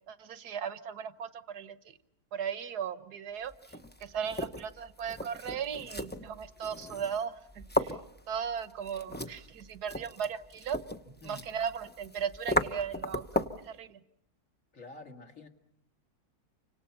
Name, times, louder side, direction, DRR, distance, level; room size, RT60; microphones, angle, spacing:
voice 1, 0.1-1.8 2.3-3.5 4.0-8.0 8.3-10.8 11.2-13.2 13.7-14.0, right 7 dB, 75° right, 12 dB, 1.7 m, -37 dB
sound 1, 3.5-13.7, left 1 dB, 10° left, 0.6 m, -36 dB
voice 2, 11.1-11.5 14.7-15.5, left 2 dB, 55° left, 3 dB, 2.4 m, -48 dB
29.5 x 25.5 x 5.7 m, 0.76 s
omnidirectional pair, 1.7 m